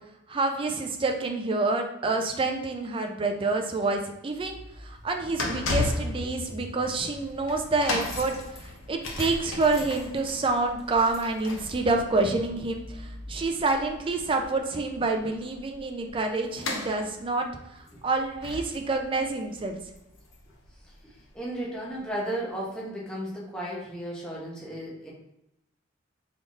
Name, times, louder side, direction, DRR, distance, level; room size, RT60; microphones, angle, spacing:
voice 1, 0.3-17.5 17.8-19.8, right 3 dB, 25° right, 4 dB, 0.4 m, -28 dB
sound 1, 4.3-21.3 21.9-22.0, left 2 dB, 85° left, 0.8 m, -36 dB
voice 2, 20.7-25.1, right 1 dB, 5° left, -6 dB, 0.8 m, -35 dB
3.8 x 3.5 x 2.4 m, 0.87 s
head